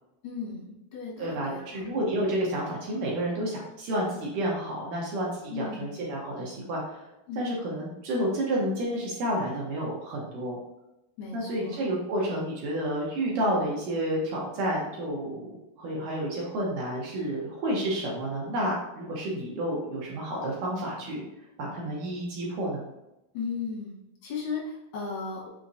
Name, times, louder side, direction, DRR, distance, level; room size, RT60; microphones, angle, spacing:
voice 1, 0.2-1.8 5.5-5.9 7.3-7.4 11.2-11.8 23.3-25.5, left 5 dB, 70° left, -5 dB, 1.2 m, -36 dB
voice 2, 1.2-7.0 7.4-10.6 11.3-15.5 15.8-21.2 21.6-22.8, right 1 dB, 75° right, -4 dB, 2.0 m, -30 dB
6.0 x 2.9 x 2.5 m, 0.91 s
omnidirectional pair, 4.4 m